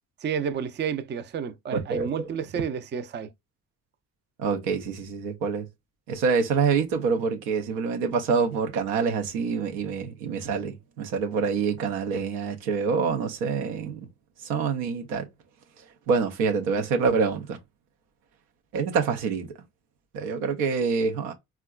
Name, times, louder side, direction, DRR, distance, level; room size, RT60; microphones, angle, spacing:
voice 1, 0.2-3.3, right 7 dB, 30° right, 0.4 m, -31 dB
voice 2, 1.7-2.1 4.4-5.7 6.1-14.0 14.5-15.3 16.1-17.6 18.7-19.5 20.1-21.3, right 5 dB, 90° right, 0.6 m, -26 dB
3.5 x 2.3 x 2.2 m
supercardioid pair, 55°, 36 cm